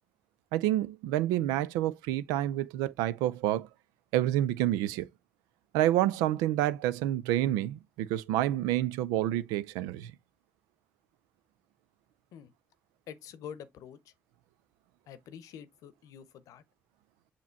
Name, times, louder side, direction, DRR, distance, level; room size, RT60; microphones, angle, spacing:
voice 1, 0.5-3.7 4.1-5.1 5.7-10.1, right 13 dB, 85° right, 0.4 m, -28 dB
voice 2, 13.1-14.1 15.1-16.6, left 8 dB, 75° left, 0.8 m, -46 dB
7.2 x 2.9 x 4.4 m
hypercardioid pair, 50°, 6 cm